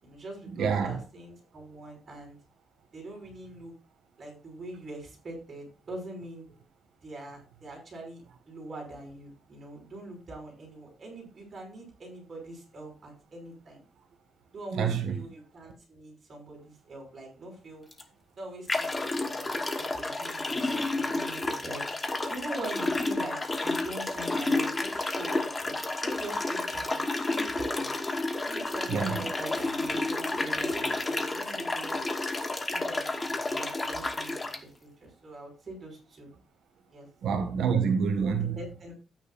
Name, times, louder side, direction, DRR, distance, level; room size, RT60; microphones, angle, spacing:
voice 1, 0.0-2.4 2.9-3.7 4.2-6.5 7.0-13.8 14.5-17.8 18.4-21.8 22.3-27.9 28.5-32.0 32.7-36.3 36.9-37.1 38.4-38.9, right 1 dB, 35° right, 5.6 m, -43 dB
voice 2, 0.5-1.0 14.7-15.3 28.9-29.2 37.2-38.6, right 6 dB, 75° right, 1.6 m, -27 dB
sound 1, 17.9-18.0 18.7-34.6, left 2 dB, 15° left, 1.1 m, -31 dB
13.0 x 9.3 x 2.5 m
cardioid pair, 165°, 0 cm